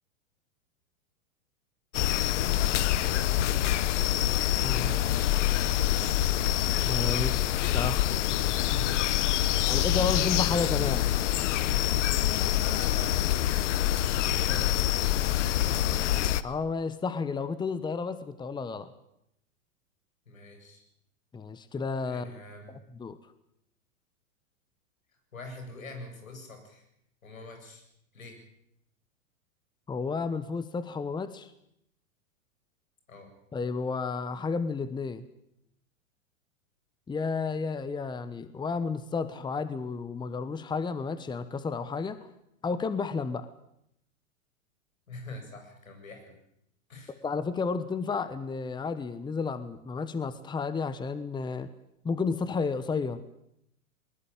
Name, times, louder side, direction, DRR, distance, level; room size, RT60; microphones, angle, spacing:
sound 1, 1.9-16.4, left 13 dB, 60° left, 1.2 m, -26 dB
voice 1, 4.6-5.0 6.9-8.2 9.6-11.1 16.4-18.9 21.3-22.4 22.7-23.2 29.9-31.5 33.5-35.3 37.1-42.3 42.6-43.5 47.2-51.7 52.0-53.2, left 4 dB, 10° left, 14 dB, 1.2 m, -32 dB
voice 2, 9.5-10.4 12.5-13.3 14.2-14.7 15.2-16.0 20.3-20.8 22.1-22.7 25.3-26.9 27.2-27.8 28.1-28.4 33.1-33.3 45.1-46.3 46.9-47.2, left 2 dB, 85° left, 5 dB, 7.8 m, -45 dB
21.0 x 20.0 x 9.0 m, 0.76 s
hypercardioid pair, 110°, 40 cm